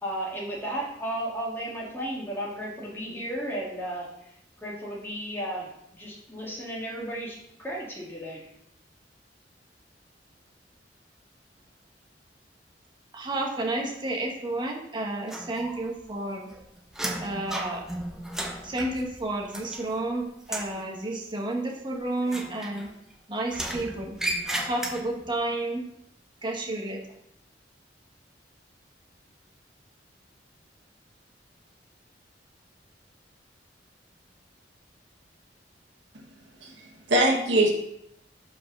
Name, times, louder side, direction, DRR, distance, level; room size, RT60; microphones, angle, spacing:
voice 1, 0.0-4.1 4.6-8.4, right 1 dB, 15° left, -4 dB, 2.0 m, -34 dB
voice 2, 13.1-16.5 17.2-17.8 18.6-22.9 23.3-24.2 24.6-25.8 26.4-27.0, right 2 dB, 25° right, -1 dB, 1.3 m, -31 dB
sound 1, 15.3-16.0 16.3-20.1 20.4-20.8 22.2-23.1 23.5-25.3, right 1 dB, 5° right, 0.8 m, -35 dB
voice 3, 36.6-37.7, right 1 dB, 90° right, 0 dB, 1.4 m, -23 dB
5.3 x 4.7 x 6.1 m, 0.78 s
head